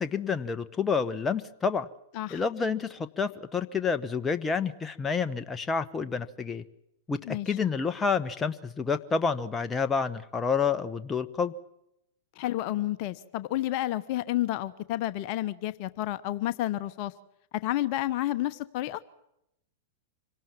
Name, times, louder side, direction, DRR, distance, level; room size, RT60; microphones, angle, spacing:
voice 1, 0.0-1.9 2.3-6.6 7.1-11.5, left 5 dB, 15° left, 9 dB, 1.2 m, -29 dB
voice 2, 12.4-17.1 17.6-19.0, left 15 dB, 50° left, 12 dB, 1.0 m, -30 dB
26.0 x 18.5 x 7.4 m, 0.83 s
hypercardioid pair, 105°, 0 cm